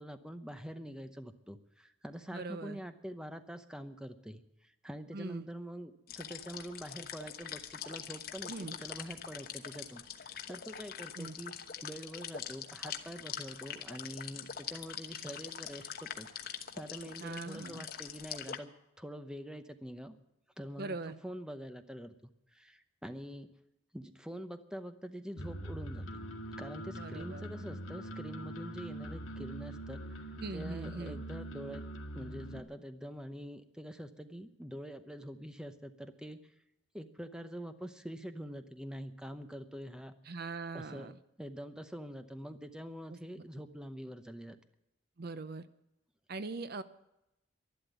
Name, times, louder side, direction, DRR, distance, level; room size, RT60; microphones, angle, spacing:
voice 1, 0.0-11.6 11.8-18.7 19.0-20.2 20.6-23.5 23.9-26.0 26.6-30.2 30.5-31.9 32.1-36.5 36.9-40.1 40.7-44.6, equal, 5° right, 9 dB, 0.8 m, -45 dB
voice 2, 2.3-2.8 5.1-5.5 8.5-8.7 11.2-11.3 17.2-17.8 20.8-21.1 26.9-27.4 30.4-31.2 40.3-41.1 43.1-43.2 45.2-45.7 46.3-46.8, right 3 dB, 45° right, 13 dB, 0.6 m, -41 dB
sound 1, 6.1-18.6, left 8 dB, 45° left, 1.1 m, -44 dB
sound 2, 25.4-32.6, right 1 dB, 75° left, 1.9 m, -43 dB
12.0 x 12.0 x 9.1 m, 0.87 s
head